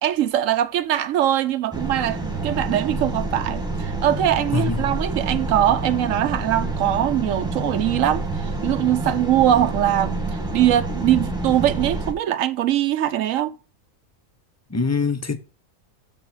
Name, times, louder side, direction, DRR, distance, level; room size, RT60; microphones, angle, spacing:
voice 1, 0.0-10.2 10.5-13.5, right 12 dB, 75° right, 1.0 m, -22 dB
sound 1, 1.7-12.1, right 2 dB, 5° right, 1.2 m, -28 dB
voice 2, 4.5-4.9 14.7-15.4, left 4 dB, 20° left, 0.4 m, -23 dB
6.7 x 6.2 x 6.0 m
omnidirectional pair, 1.4 m